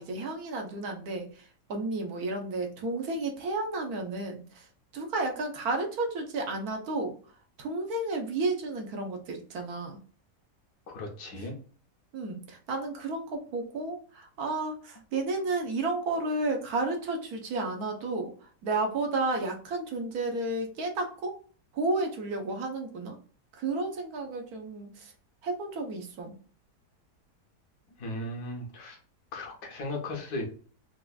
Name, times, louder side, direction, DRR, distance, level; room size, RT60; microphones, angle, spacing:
voice 1, 0.0-4.7 4.9-7.1 7.6-10.0 12.1-21.4 21.7-23.2 23.5-25.1 25.4-26.3, right 2 dB, 70° right, 3 dB, 1.3 m, -32 dB
voice 2, 10.9-11.5 28.0-29.0 29.3-30.5, left 1 dB, 75° left, 1 dB, 1.5 m, -36 dB
4.6 x 2.4 x 2.3 m, 0.41 s
omnidirectional pair, 1.7 m